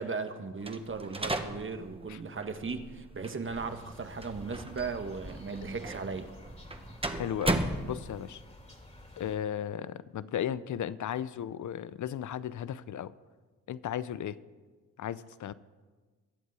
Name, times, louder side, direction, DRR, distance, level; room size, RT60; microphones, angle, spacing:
voice 1, 0.0-6.3, right 4 dB, 35° right, 8 dB, 1.4 m, -37 dB
sound 1, 0.6-8.4, right 2 dB, 15° right, 1.4 m, -37 dB
sound 2, 3.4-9.4, left 1 dB, 20° left, 3.0 m, -50 dB
voice 2, 7.0-8.4 9.2-13.1 13.7-14.4 15.0-15.5, left 10 dB, 60° left, 17 dB, 0.7 m, -35 dB
22.5 x 8.1 x 4.8 m, 1.4 s
supercardioid pair, 60°, 34 cm